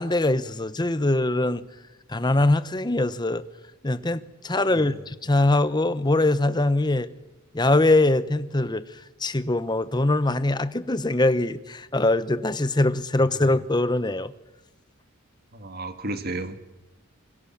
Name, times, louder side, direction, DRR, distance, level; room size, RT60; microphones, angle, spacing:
voice 1, 0.0-1.6 2.1-3.4 3.8-7.1 7.5-8.8 9.2-14.3, left 2 dB, 20° left, 0.9 m, -22 dB
voice 2, 15.5-16.6, right 2 dB, 45° right, 1.9 m, -33 dB
27.0 x 22.5 x 7.3 m
head